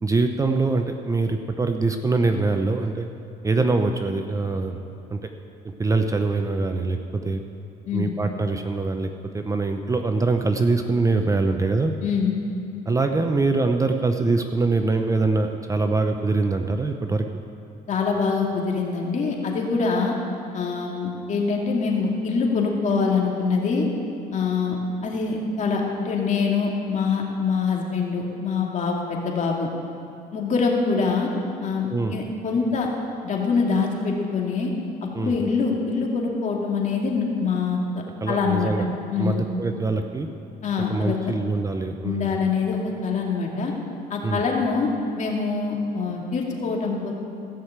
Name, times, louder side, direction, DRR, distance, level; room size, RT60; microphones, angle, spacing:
voice 1, 0.0-3.1 3.4-4.8 5.1-5.3 5.6-7.4 7.9-11.9 12.9-17.3 31.9-32.1 35.1-35.3 38.2-38.9 39.2-40.3 40.9-42.3 44.2-44.4, right 3 dB, 20° right, 6 dB, 0.7 m, -23 dB
voice 2, 12.0-12.4 17.9-20.2 20.5-23.9 24.3-29.7 30.3-31.3 31.6-32.9 33.2-34.7 35.2-37.8 38.3-38.7 39.1-39.4 40.6-41.3 42.0-43.7 44.1-47.1, left 5 dB, 45° left, -1 dB, 2.4 m, -24 dB
15.5 x 6.4 x 8.1 m, 2.8 s
cardioid pair, 110°, 17 cm